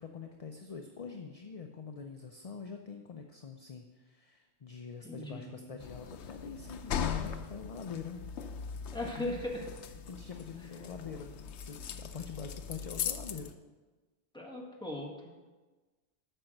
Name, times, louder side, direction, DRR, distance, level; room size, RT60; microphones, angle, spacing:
voice 1, 0.0-8.3 9.2-9.4 10.1-13.5, left 5 dB, 40° left, 4 dB, 0.6 m, -45 dB
voice 2, 5.0-5.8 8.9-9.7 14.3-15.5, left 1 dB, 5° left, -2 dB, 1.7 m, -39 dB
sound 1, 5.8-13.5, left 7 dB, 85° left, 0.9 m, -39 dB
8.9 x 6.0 x 6.5 m, 1.2 s
omnidirectional pair, 1.1 m